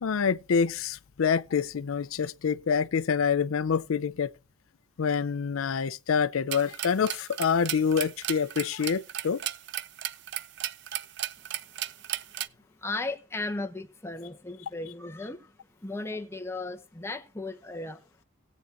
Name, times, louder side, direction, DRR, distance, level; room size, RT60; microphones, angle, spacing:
voice 1, 0.0-4.3 5.0-9.4, left 6 dB, 85° left, 0.5 m, -26 dB
sound 1, 6.5-12.5, right 13 dB, 55° right, 0.4 m, -35 dB
voice 2, 12.6-15.6 15.8-18.1, left 2 dB, 15° left, 1.0 m, -36 dB
19.5 x 8.1 x 2.6 m
head